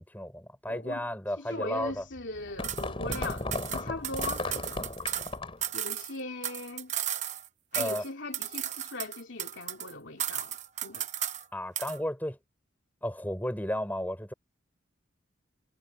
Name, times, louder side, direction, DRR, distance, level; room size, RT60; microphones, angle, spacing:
voice 1, 0.0-2.0 7.8-8.0 11.5-12.4 13.0-14.3, left 1 dB, 10° left, 5.7 m, -33 dB
voice 2, 0.7-1.1 1.5-4.8 5.7-6.9 7.7-10.5 10.8-11.1, left 2 dB, 60° left, 3.1 m, -39 dB
sound 1, 1.9-5.7, left 2 dB, 25° left, 3.4 m, -35 dB
sound 2, 2.6-2.8 3.1-5.3 5.6-7.5 7.7-8.1 8.3-9.9 10.2-11.4 11.8-12.0, right 11 dB, 35° right, 0.7 m, -34 dB
head